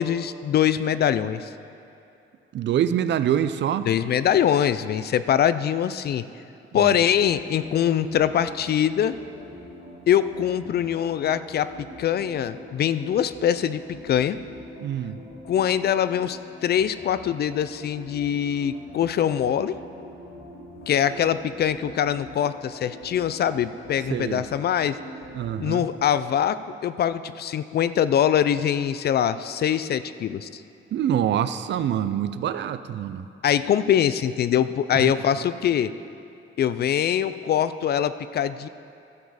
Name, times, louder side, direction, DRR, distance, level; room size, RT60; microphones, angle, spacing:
voice 1, 0.0-1.5 3.9-6.2 6.7-9.2 10.1-11.7 12.0-14.4 15.5-19.8 20.9-25.0 25.6-30.6 33.4-35.9 36.6-38.7, left 9 dB, 50° left, 13 dB, 0.4 m, -23 dB
voice 2, 2.5-3.9 6.7-7.0 14.8-15.2 24.1-24.4 25.3-25.9 30.9-33.3 35.0-35.1, right 10 dB, 60° right, 12 dB, 0.5 m, -25 dB
sound 1, 7.1-26.0, left 1 dB, 80° left, 2.3 m, -44 dB
13.0 x 7.2 x 4.9 m, 2.7 s
cardioid pair, 110°, 21 cm